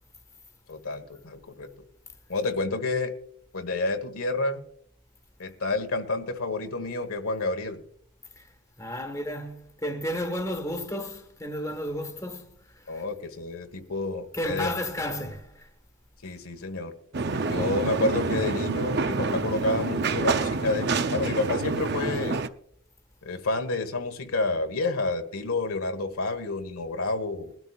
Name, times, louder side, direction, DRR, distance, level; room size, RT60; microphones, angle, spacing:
voice 1, 0.7-1.7 2.3-3.1 3.5-4.6 5.4-7.8 12.9-14.8 16.2-16.9 17.5-22.4 23.2-27.5, left 3 dB, 90° left, 1.5 m, -29 dB
voice 2, 8.8-13.0 14.3-15.7, equal, 15° left, 1.5 m, -33 dB
sound 1, 17.1-22.5, right 3 dB, 50° right, 0.6 m, -27 dB
20.5 x 12.5 x 2.4 m
head